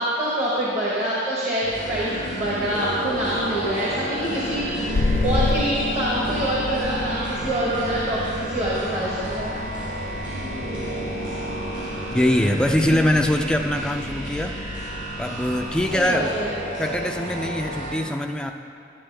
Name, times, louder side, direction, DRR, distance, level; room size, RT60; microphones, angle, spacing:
voice 1, 0.0-9.5 12.9-13.0 15.9-16.5, right 1 dB, 35° right, -7 dB, 1.3 m, -25 dB
sound 1, 1.6-17.9, right 1 dB, 65° right, 2.5 m, -31 dB
sound 2, 4.3-16.1, left 3 dB, 75° left, 0.5 m, -32 dB
voice 2, 12.1-14.6 15.2-16.3 16.8-18.5, left 1 dB, 5° left, 4 dB, 0.3 m, -22 dB
11.0 x 9.7 x 3.4 m, 2.7 s
head